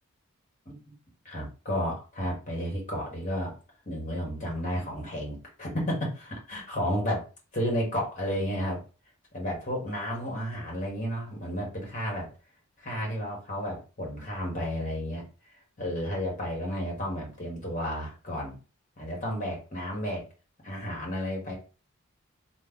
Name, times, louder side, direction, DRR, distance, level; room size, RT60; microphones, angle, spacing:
voice 1, 1.2-3.5 3.8-7.3 7.5-8.8 9.3-12.3 12.8-15.2 15.8-18.6 19.0-20.3 20.6-21.5, equal, 35° left, -2 dB, 1.4 m, -32 dB
3.2 x 2.2 x 3.6 m, 0.33 s
head